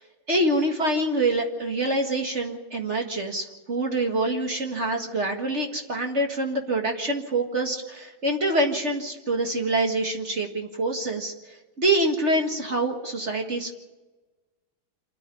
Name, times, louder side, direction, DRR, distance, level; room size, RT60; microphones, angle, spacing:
voice 1, 0.3-13.7, right 1 dB, 35° right, 3 dB, 1.9 m, -26 dB
27.5 x 9.9 x 9.9 m, 1.2 s
omnidirectional pair, 2.2 m